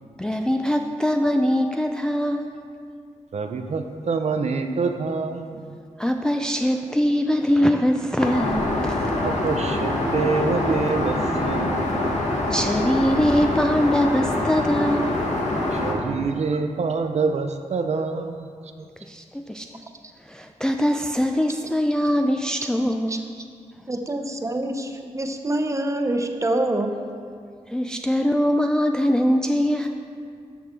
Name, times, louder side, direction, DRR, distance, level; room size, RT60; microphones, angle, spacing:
voice 1, 0.2-2.6 6.0-9.2 12.5-15.3 19.0-19.7 20.3-23.2 27.7-29.9, equal, 5° left, 3 dB, 0.4 m, -22 dB
voice 2, 3.3-5.8 9.2-12.0 15.7-18.5 18.8-18.9, right 4 dB, 65° right, 7 dB, 0.6 m, -26 dB
Aircraft, 8.2-15.9, left 1 dB, 70° left, 1.3 m, -24 dB
voice 3, 23.9-26.9, right 1 dB, 25° right, 5 dB, 0.7 m, -25 dB
13.0 x 5.9 x 3.7 m, 2.3 s
wide cardioid pair, 100°, 12 cm